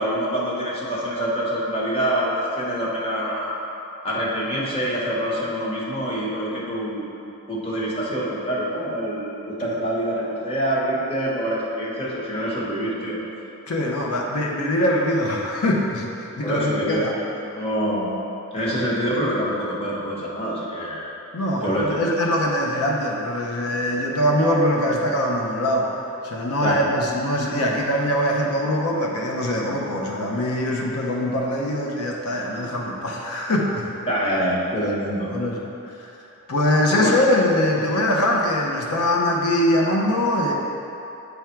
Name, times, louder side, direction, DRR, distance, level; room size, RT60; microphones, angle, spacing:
voice 1, 0.0-3.6 4.0-7.2 7.5-13.2 16.4-18.1 18.5-21.1 21.6-22.0 26.6-26.8 34.1-35.3 36.9-37.1, equal, 25° left, -6 dB, 1.2 m, -25 dB
voice 2, 13.7-17.1 21.3-26.0 26.2-33.9 35.3-36.1 36.5-40.5, left 1 dB, 85° left, -1 dB, 0.7 m, -23 dB
9.2 x 3.6 x 4.5 m, 2.9 s
head